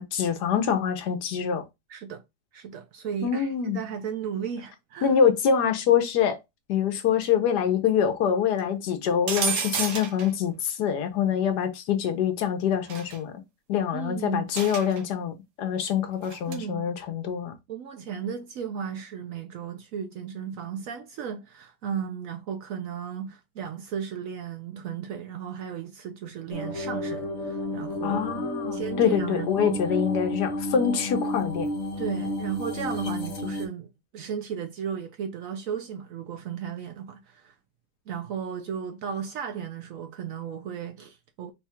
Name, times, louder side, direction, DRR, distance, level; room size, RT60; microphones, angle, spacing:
voice 1, 0.0-1.6 3.2-3.8 5.0-6.4 6.7-13.4 13.7-17.5 28.0-31.7, left 8 dB, 75° left, 1.3 m, -25 dB
voice 2, 1.9-2.2 2.5-5.1 13.9-14.4 16.5-16.9 17.7-28.3 28.7-29.9 32.0-37.5 38.1-41.5, right 7 dB, 65° right, 0.9 m, -35 dB
sound 1, 9.3-10.3 12.9-13.2 14.5-15.0 16.2-16.6, right 6 dB, 85° right, 1.5 m, -30 dB
sound 2, 26.5-33.7, left 1 dB, 50° left, 1.1 m, -32 dB
3.9 x 2.3 x 4.3 m
omnidirectional pair, 1.8 m